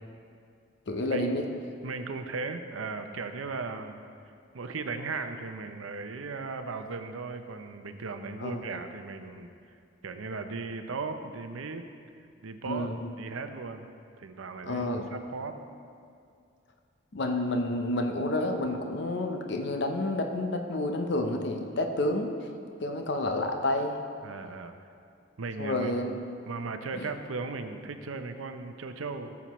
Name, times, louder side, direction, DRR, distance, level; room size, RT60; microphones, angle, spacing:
voice 1, 0.9-1.5 8.4-8.6 12.7-13.0 14.6-15.0 17.1-22.3 22.8-24.0 25.6-26.1 26.9-27.1, left 1 dB, 55° left, 4 dB, 0.7 m, -29 dB
voice 2, 1.8-4.0 4.5-9.5 10.0-11.8 12.4-13.9 14.2-15.6 24.2-24.7 25.4-25.9 26.5-29.4, right 4 dB, 85° right, 7 dB, 0.6 m, -37 dB
14.0 x 7.2 x 3.1 m, 2.4 s
head